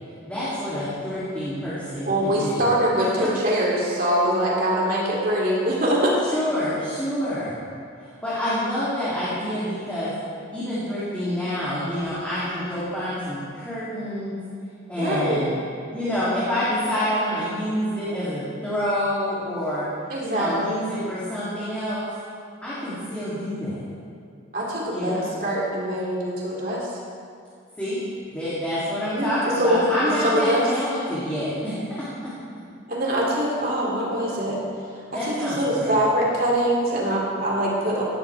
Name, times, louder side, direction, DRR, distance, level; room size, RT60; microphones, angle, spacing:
voice 1, 0.3-2.7 3.0-3.3 6.3-7.7 8.0-10.1 10.5-14.3 14.9-15.5 15.9-19.8 20.2-22.1 22.6-23.8 24.9-25.3 27.8-28.0 28.3-31.9 35.1-35.9, equal, 5° left, -12 dB, 3.2 m, -27 dB
voice 2, 2.0-6.1 15.0-15.5 20.1-20.8 24.5-26.8 29.1-29.8 30.2-30.6 32.9-34.6 35.3-38.0, equal, 45° right, -4 dB, 3.2 m, -23 dB
17.0 x 13.5 x 3.6 m, 2.3 s
head